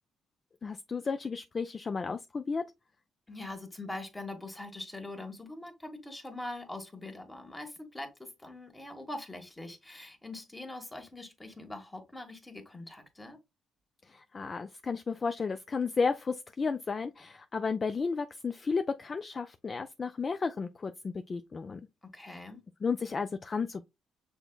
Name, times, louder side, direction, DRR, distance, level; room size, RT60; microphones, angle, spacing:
voice 1, 0.6-2.6 14.1-21.8 22.3-22.4 22.8-23.8, left 5 dB, 35° left, 0.3 m, -33 dB
voice 2, 3.3-13.4 22.1-22.6, left 2 dB, 15° left, 1.3 m, -43 dB
6.2 x 3.4 x 2.2 m
cardioid pair, 90°, 0 cm